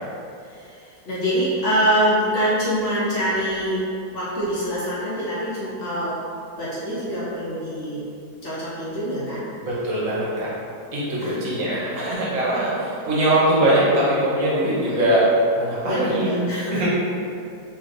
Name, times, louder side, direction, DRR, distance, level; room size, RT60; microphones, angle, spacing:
voice 1, 0.4-6.2 6.5-8.1 8.4-9.5 11.2-11.4 14.8-15.0 15.8-16.9, equal, 55° left, -9 dB, 1.0 m, -25 dB
voice 2, 9.6-10.5 10.9-15.2 15.6-16.9, right 1 dB, 65° right, -7 dB, 1.0 m, -22 dB
3.3 x 2.7 x 2.5 m, 2.5 s
omnidirectional pair, 1.6 m